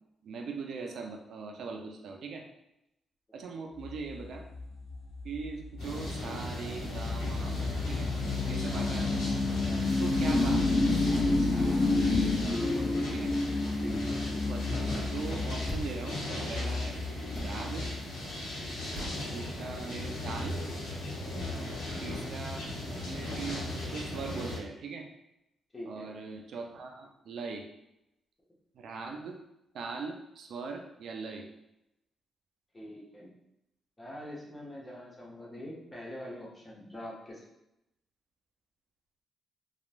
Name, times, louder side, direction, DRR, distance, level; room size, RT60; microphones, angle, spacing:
voice 1, 0.2-2.4 3.3-4.4 5.2-7.5 7.9-8.1 8.5-9.1 9.9-11.0 11.4-13.3 14.5-14.7 15.1-16.2 16.5-17.0 17.4-17.9 19.3-20.6 22.0-25.1 25.9-27.6 28.7-29.4 29.7-31.5, right 4 dB, 70° right, 2 dB, 0.3 m, -41 dB
sound 1, 3.8-18.0, left 3 dB, 65° left, 0.4 m, -31 dB
sound 2, 5.8-24.6, left 1 dB, 85° left, 0.9 m, -37 dB
voice 2, 13.8-14.2 21.5-21.9 25.7-26.1 32.7-33.3 34.0-37.5, left 1 dB, 25° left, -4 dB, 1.0 m, -44 dB
sound 3, 15.7-16.1 17.3-17.6 18.9-19.3, right 1 dB, 25° right, 0.8 m, -40 dB
3.0 x 2.2 x 2.5 m, 0.87 s
supercardioid pair, 55°, 0 cm